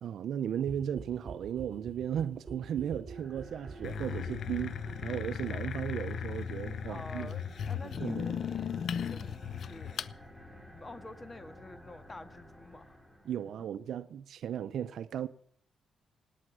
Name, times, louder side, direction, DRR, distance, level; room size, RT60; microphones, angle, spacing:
voice 1, 0.0-7.3 8.0-8.3 13.3-15.3, right 9 dB, 75° right, 0.6 m, -36 dB
sound 1, 0.6-12.1 12.3-12.4 12.6-12.7 12.9-13.0 13.2-13.3 13.5-13.6 13.8-13.9, right 5 dB, 35° right, 5.1 m, -49 dB
sound 2, 3.1-13.5, left 1 dB, 5° left, 2.6 m, -52 dB
sound 3, 3.8-10.1, left 8 dB, 65° left, 0.7 m, -37 dB
voice 2, 6.9-10.1 10.7-13.0 13.6-13.7, left 2 dB, 25° left, 1.6 m, -49 dB
17.5 x 10.0 x 6.2 m
cardioid pair, 85°, 0 cm